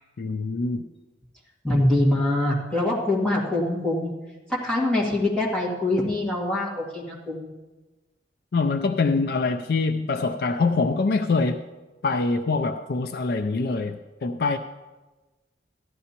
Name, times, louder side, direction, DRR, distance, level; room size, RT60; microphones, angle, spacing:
voice 1, 0.2-0.8 8.5-11.6 12.0-14.6, left 3 dB, 55° left, 9 dB, 0.4 m, -24 dB
voice 2, 1.6-4.1 4.5-7.5, left 1 dB, 5° left, -6 dB, 1.9 m, -24 dB
14.5 x 11.0 x 2.9 m, 1.2 s
head